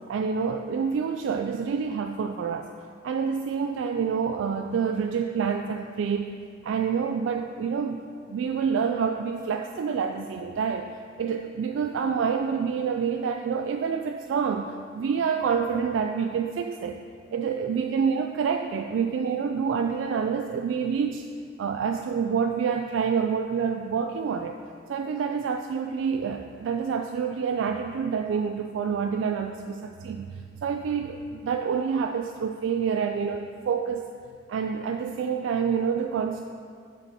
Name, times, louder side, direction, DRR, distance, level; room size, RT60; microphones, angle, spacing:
voice 1, 0.1-2.7 3.0-6.3 6.6-8.0 8.3-10.9 11.2-17.0 17.3-21.3 21.6-24.6 24.9-34.1 34.5-36.5, right 6 dB, 90° right, 4 dB, 0.3 m, -27 dB
7.5 x 4.9 x 4.1 m, 2.2 s
head